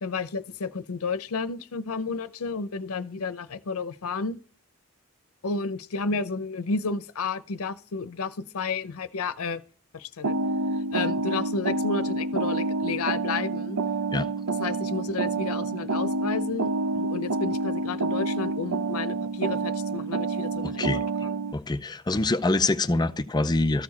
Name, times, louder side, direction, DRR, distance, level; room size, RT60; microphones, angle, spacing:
voice 1, 0.0-4.4 5.4-9.6 9.9-10.3 10.9-13.8 14.6-21.3, left 4 dB, 75° left, 0.6 m, -31 dB
sound 1, 10.2-21.5, right 3 dB, 90° right, 0.6 m, -28 dB
voice 2, 20.6-21.0 21.5-23.8, left 2 dB, 20° left, 0.5 m, -25 dB
13.5 x 4.7 x 4.2 m
head